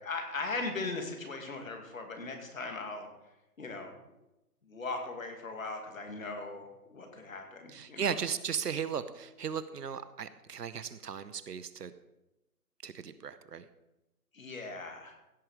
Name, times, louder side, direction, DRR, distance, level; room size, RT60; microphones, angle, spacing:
voice 1, 0.0-3.1 3.6-4.0 4.6-8.1 14.3-15.2, left 3 dB, 55° left, 4 dB, 2.4 m, -39 dB
voice 2, 7.7-11.9 12.8-13.7, right 7 dB, 80° right, 14 dB, 1.0 m, -36 dB
16.0 x 6.3 x 4.9 m, 0.97 s
hypercardioid pair, 175°, 47 cm